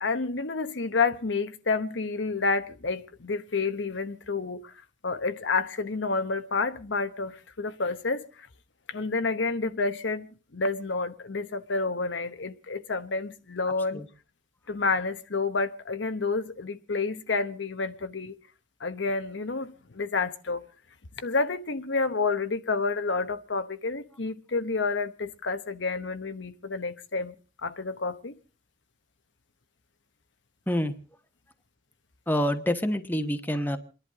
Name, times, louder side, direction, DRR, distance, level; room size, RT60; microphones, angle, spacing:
voice 1, 0.0-4.7 5.0-8.2 8.9-10.3 10.5-14.0 14.7-18.4 18.8-20.6 21.2-27.3 27.6-28.4, left 4 dB, 75° left, 1.0 m, -29 dB
voice 2, 32.3-33.8, equal, 10° left, 1.1 m, -27 dB
28.5 x 11.0 x 3.7 m
head